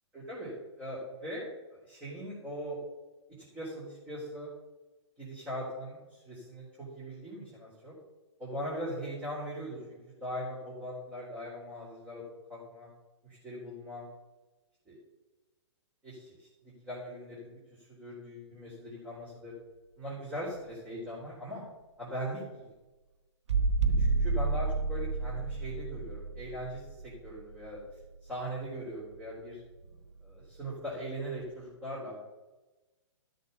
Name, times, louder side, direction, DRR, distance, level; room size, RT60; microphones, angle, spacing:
voice 1, 0.1-1.4 1.7-2.8 3.5-4.5 5.2-7.9 8.4-12.2 12.5-12.9 13.2-14.1 14.9-15.0 16.0-16.5 16.8-19.5 20.0-21.6 22.0-22.7 24.0-27.8 28.2-29.6 30.2-32.1, equal, 10° right, -8 dB, 3.9 m, -40 dB
sound 1, 23.5-28.1 29.8-29.9, right 3 dB, 65° right, 1.0 m, -30 dB
13.0 x 6.7 x 5.5 m, 1.1 s
hypercardioid pair, 130°, 15 cm